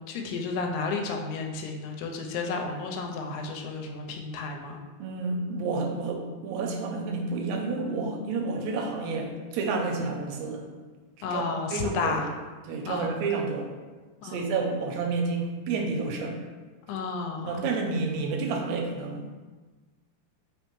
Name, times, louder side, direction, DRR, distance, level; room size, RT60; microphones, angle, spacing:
voice 1, 0.1-4.8 11.2-12.3 12.9-13.2 14.2-14.5 16.9-17.7, left 4 dB, 90° left, 2 dB, 2.0 m, -32 dB
voice 2, 5.0-10.7 11.3-11.4 11.7-12.2 12.7-13.7 14.2-16.4 17.5-19.4, right 4 dB, 80° right, 2 dB, 1.9 m, -30 dB
4.3 x 3.6 x 3.0 m, 1.3 s
omnidirectional pair, 3.5 m